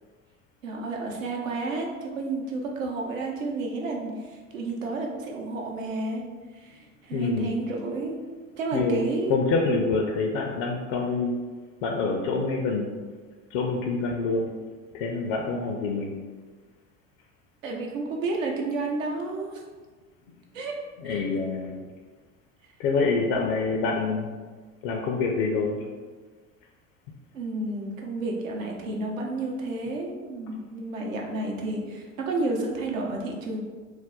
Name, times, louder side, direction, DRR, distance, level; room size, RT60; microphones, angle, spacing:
voice 1, 0.6-6.2 6.5-8.2 8.6-9.3 17.6-19.6 20.5-20.8 21.0-21.2 27.3-33.6, right 2 dB, 85° right, 0 dB, 0.7 m, -31 dB
voice 2, 7.1-7.6 8.7-11.4 11.8-12.9 13.5-14.5 14.9-16.1 21.0-21.8 22.8-24.3 24.8-25.8, left 3 dB, 60° left, 1 dB, 0.5 m, -26 dB
2.5 x 2.1 x 3.7 m, 1.4 s
hypercardioid pair, 75°, 39 cm